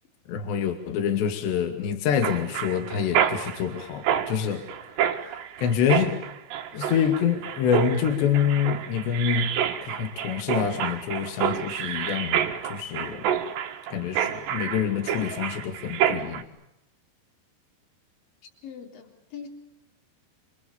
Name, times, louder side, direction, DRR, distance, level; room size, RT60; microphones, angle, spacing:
voice 1, 0.3-4.7 5.6-6.2 6.7-9.5 9.8-13.3 13.9-16.5, left 8 dB, 75° left, 6 dB, 4.5 m, -26 dB
Mechanisms, 2.2-16.4, right 9 dB, 75° right, 3.8 m, -28 dB
voice 2, 18.4-19.5, left 7 dB, 50° left, 4 dB, 5.1 m, -42 dB
30.0 x 26.0 x 7.2 m, 0.85 s
omnidirectional pair, 5.2 m